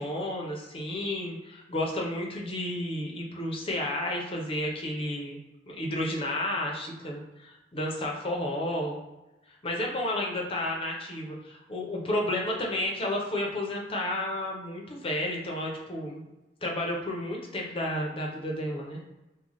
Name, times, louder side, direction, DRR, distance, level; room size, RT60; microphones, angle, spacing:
voice 1, 0.0-5.4 5.7-9.0 9.5-16.3 16.6-19.0, left 1 dB, 30° left, -1 dB, 0.7 m, -32 dB
3.1 x 2.2 x 3.8 m, 1.0 s
head